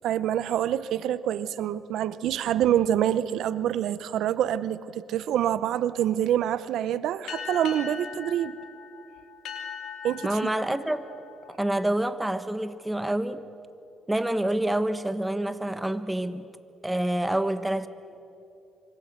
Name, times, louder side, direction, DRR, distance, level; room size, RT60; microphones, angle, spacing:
voice 1, 0.0-8.6 10.0-10.4, right 11 dB, 80° right, 0.8 m, -26 dB
sound 1, 7.3-12.4, left 7 dB, 80° left, 2.7 m, -40 dB
voice 2, 10.2-11.2 11.5-13.4 14.1-16.5 16.8-17.9, right 1 dB, 10° right, 1.4 m, -27 dB
26.5 x 24.5 x 8.1 m
cardioid pair, 90°, 0 cm